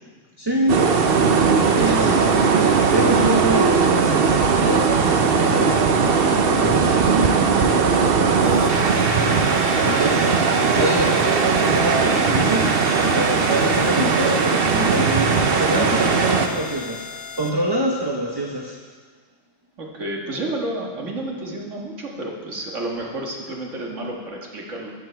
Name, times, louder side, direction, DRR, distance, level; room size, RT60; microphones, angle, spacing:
voice 1, 0.4-0.9 1.7-2.1 2.8-7.5 9.8-18.8, equal, 20° right, -1 dB, 0.9 m, -26 dB
sound 1, 0.7-16.5, right 5 dB, 55° right, 0.9 m, -18 dB
voice 2, 1.8-2.2 19.8-24.9, right 1 dB, 70° right, -1 dB, 1.9 m, -32 dB
sound 2, 8.4-17.5, left 4 dB, 80° left, 1.5 m, -36 dB
13.5 x 8.4 x 4.5 m, 1.5 s
omnidirectional pair, 1.3 m